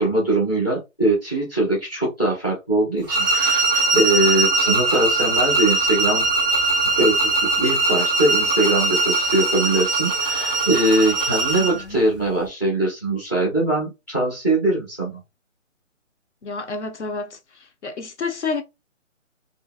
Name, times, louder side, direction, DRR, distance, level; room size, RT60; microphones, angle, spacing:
voice 1, 0.0-6.3 7.0-15.2, right 2 dB, 15° left, 0.7 m, -22 dB
sound 1, 3.1-11.8, right 3 dB, 15° right, 0.7 m, -21 dB
voice 2, 11.6-12.0 16.4-18.6, left 4 dB, 60° left, 1.0 m, -30 dB
2.7 x 2.7 x 2.3 m
hypercardioid pair, 165°, 39 cm